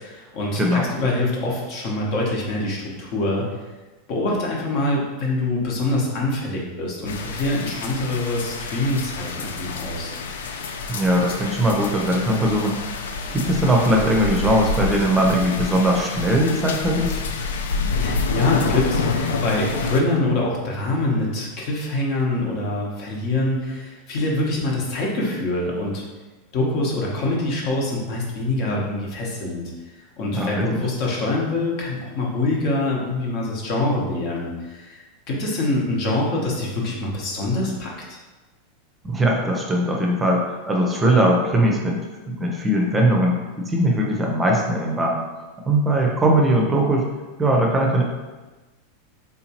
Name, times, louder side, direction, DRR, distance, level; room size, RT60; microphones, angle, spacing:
voice 1, 0.0-3.5 4.1-10.1 18.0-26.0 26.5-29.7 30.2-38.2, left 2 dB, 55° left, -2 dB, 1.0 m, -25 dB
voice 2, 0.6-0.9 10.9-13.0 13.3-17.1 30.3-30.8 39.0-42.0 42.3-45.2 45.6-47.1 47.4-48.0, right 1 dB, 20° right, 0 dB, 0.6 m, -20 dB
sound 1, 7.1-20.0, left 4 dB, 80° left, 0.3 m, -28 dB
3.5 x 2.8 x 2.8 m, 1.2 s
hypercardioid pair, 100°, 0 cm